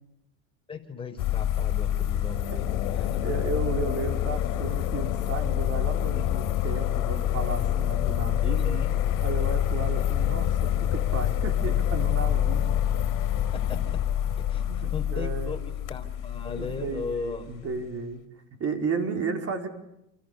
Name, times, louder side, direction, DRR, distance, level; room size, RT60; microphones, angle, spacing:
voice 1, 0.7-3.4 6.1-6.2 8.4-8.9 13.5-14.0 14.5-14.6 14.9-17.5, left 4 dB, 15° left, 1 dB, 5.5 m, -37 dB
sound 1, 1.2-17.6, left 11 dB, 50° left, 4.5 m, -27 dB
sound 2, 2.2-15.3, left 14 dB, 80° left, 2.4 m, -37 dB
voice 2, 3.0-8.8 9.2-12.8 14.6-15.6 16.5-18.2 18.6-19.7, right 4 dB, 35° right, 5 dB, 4.9 m, -33 dB
29.0 x 28.0 x 7.1 m, 0.84 s
supercardioid pair, 120°, 40 cm